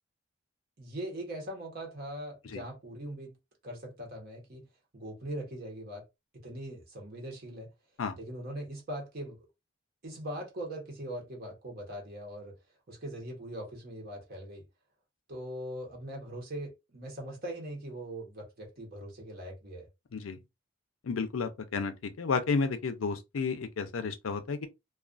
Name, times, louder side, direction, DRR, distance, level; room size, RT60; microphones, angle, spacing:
voice 1, 0.8-3.4 3.6-4.7 4.9-6.0 6.4-7.7 8.2-9.5 10.0-12.6 12.9-14.6 15.3-19.9, right 1 dB, 50° right, 0.9 m, -41 dB
voice 2, 21.0-24.7, left 4 dB, 80° left, 0.5 m, -32 dB
2.3 x 2.3 x 2.4 m
head